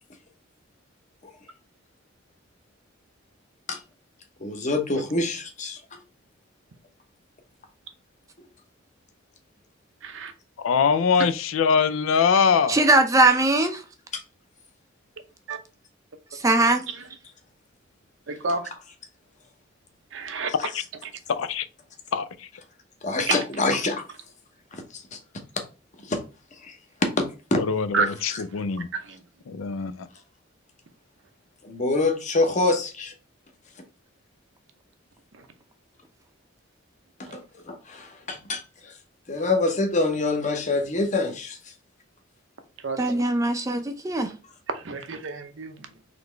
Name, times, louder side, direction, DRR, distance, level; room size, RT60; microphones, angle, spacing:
voice 1, 4.4-5.8 14.1-14.2 23.0-24.0 24.7-25.2 26.0-26.2 26.6-26.8 27.0-27.2 27.5-27.6 31.6-33.1 37.2-37.4 37.7-38.9 39.3-41.6, left 2 dB, 40° left, 0.8 m, -25 dB
voice 2, 10.6-12.8 20.6-20.8 21.3-21.7 22.1-22.5 27.5-28.9 29.5-30.1, left 6 dB, 85° left, 0.4 m, -23 dB
voice 3, 12.7-13.8 16.3-16.8 43.0-44.3, right 2 dB, 15° right, 0.4 m, -20 dB
voice 4, 18.3-18.6 20.1-20.5 27.9-28.1 28.9-29.2 42.8-43.2 44.7-45.8, right 4 dB, 65° right, 0.7 m, -29 dB
4.0 x 3.1 x 3.3 m
head